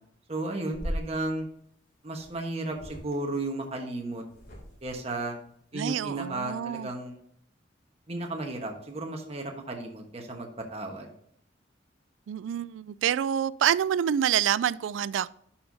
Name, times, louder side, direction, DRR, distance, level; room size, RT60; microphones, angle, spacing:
voice 1, 0.3-1.5 2.0-4.2 4.8-5.4 5.7-7.1 8.1-11.1, right 2 dB, 35° right, 1.2 m, -34 dB
sound 1, 0.7-1.1 2.2-2.3 2.7-3.1 4.3-5.0, equal, 50° left, 2.7 m, -37 dB
voice 2, 5.7-6.9 12.3-15.3, right 9 dB, 85° right, 0.3 m, -27 dB
11.0 x 5.7 x 2.7 m
head